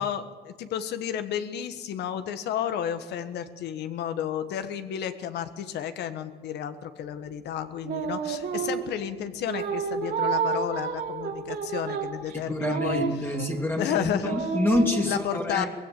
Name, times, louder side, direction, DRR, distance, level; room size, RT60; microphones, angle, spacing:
voice 1, 0.0-13.0 13.7-14.5 15.0-15.7, left 9 dB, 80° left, 10 dB, 1.5 m, -32 dB
sound 1, 7.8-9.0 9.5-13.7 14.2-15.0, right 6 dB, 70° right, 3.0 m, -30 dB
voice 2, 12.3-15.7, left 1 dB, 15° left, 2 dB, 2.5 m, -27 dB
19.5 x 16.0 x 9.0 m, 1.5 s
cardioid pair, 115°, 17 cm